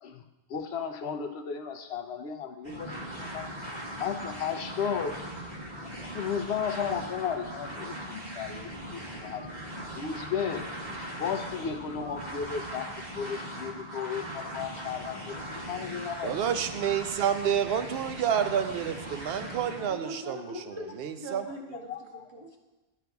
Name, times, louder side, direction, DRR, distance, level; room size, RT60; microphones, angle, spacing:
voice 1, 0.5-3.5 4.0-5.1 6.0-9.5 9.9-10.7 11.2-12.9 13.1-16.5 21.7-22.0, left 7 dB, 85° left, 6 dB, 0.9 m, -34 dB
sound 1, 2.6-19.9, equal, 45° right, 1.5 m, -39 dB
voice 2, 16.2-20.5 21.0-21.4, right 8 dB, 75° right, 9 dB, 0.8 m, -29 dB
voice 3, 19.8-22.6, right 1 dB, 25° right, -1 dB, 1.1 m, -42 dB
11.5 x 5.9 x 2.3 m, 1.1 s
omnidirectional pair, 1.0 m